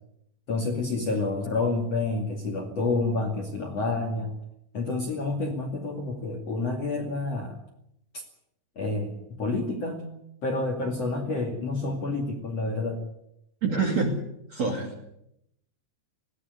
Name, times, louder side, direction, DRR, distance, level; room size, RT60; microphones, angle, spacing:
voice 1, 0.5-4.4 4.7-7.6 8.8-10.0 10.4-13.0, left 3 dB, 40° left, 3 dB, 2.7 m, -29 dB
voice 2, 13.6-15.1, right 4 dB, 40° right, 2 dB, 3.0 m, -27 dB
19.5 x 17.0 x 9.4 m, 0.79 s
omnidirectional pair, 5.7 m